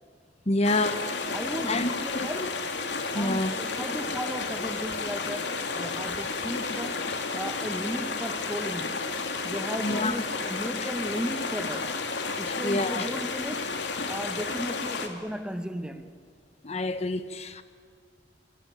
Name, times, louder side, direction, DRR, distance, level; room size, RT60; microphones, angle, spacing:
voice 1, 0.4-1.4 1.7-2.5 3.1-3.5 9.8-10.1 10.8-10.9 12.5-13.1 16.6-17.6, left 2 dB, 35° left, 1.3 m, -28 dB
sound 1, 0.6-15.1, left 4 dB, 70° left, 2.9 m, -32 dB
voice 2, 1.3-2.4 3.1-9.0 9.4-10.2 10.5-12.0 12.4-13.8 14.1-16.1, equal, 5° right, 1.5 m, -35 dB
26.0 x 25.0 x 9.0 m
head